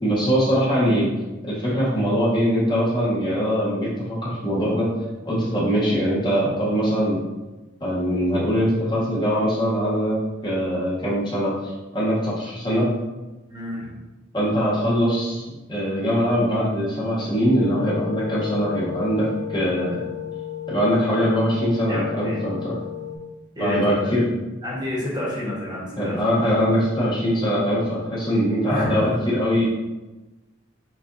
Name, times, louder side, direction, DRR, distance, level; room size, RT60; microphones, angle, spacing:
voice 1, 0.0-1.1 1.4-4.9 5.2-7.2 7.8-10.2 10.4-12.9 14.3-20.0 20.7-22.8 23.6-24.2 26.0-29.7, equal, 20° left, -7 dB, 1.0 m, -22 dB
voice 2, 13.5-13.9 21.9-22.5 23.5-24.2 24.6-26.6 28.7-29.3, left 1 dB, 20° right, -5 dB, 1.1 m, -29 dB
sound 1, 17.5-23.2, left 10 dB, 55° right, 0.5 m, -33 dB
6.2 x 2.5 x 2.6 m, 1.1 s
head